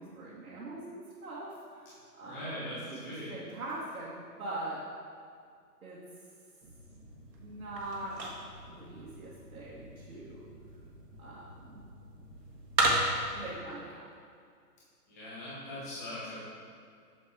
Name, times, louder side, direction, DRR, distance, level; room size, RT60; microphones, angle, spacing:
voice 1, 0.0-4.8 5.8-6.0 7.4-8.2 8.6-10.5 11.2-11.8 13.3-14.0, right 2 dB, 60° right, -8 dB, 1.6 m, -42 dB
voice 2, 2.3-2.8 3.0-3.4 15.1-16.4, left 1 dB, 10° left, -9 dB, 1.1 m, -40 dB
sound 1, 6.6-13.4, right 1 dB, 80° right, 1.7 m, -36 dB
6.9 x 6.5 x 3.5 m, 2.3 s
hypercardioid pair, 165°, 49 cm